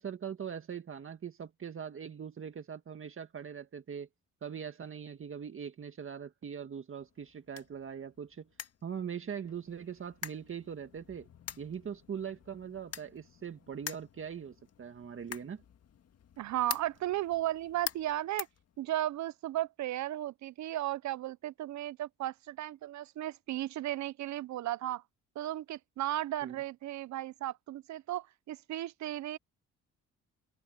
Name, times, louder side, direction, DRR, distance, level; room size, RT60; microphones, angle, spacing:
voice 1, 0.0-4.1 4.4-8.5 8.8-11.3 11.6-15.6 26.4-26.6, right 7 dB, 45° right, 1.8 m, -41 dB
sound 1, 7.0-19.3, left 8 dB, 55° left, 1.8 m, -47 dB
voice 2, 16.4-18.5 18.8-25.0 25.4-29.4, right 14 dB, 70° right, 0.7 m, -35 dB
cardioid pair, 90°, 30 cm